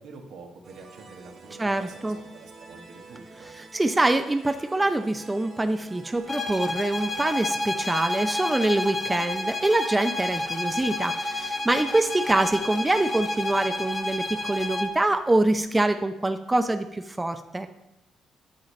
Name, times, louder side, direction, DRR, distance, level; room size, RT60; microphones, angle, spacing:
voice 1, 0.0-3.5, right 4 dB, 80° right, 2 dB, 1.3 m, -47 dB
sound 1, 0.6-14.8, right 3 dB, 50° right, 1.9 m, -48 dB
voice 2, 1.6-2.2 3.6-17.7, right 2 dB, 15° right, 8 dB, 0.5 m, -25 dB
sound 2, 6.3-15.0, left 2 dB, 30° left, 0.8 m, -30 dB
8.7 x 7.5 x 3.2 m, 0.93 s
cardioid pair, 90°, 0 cm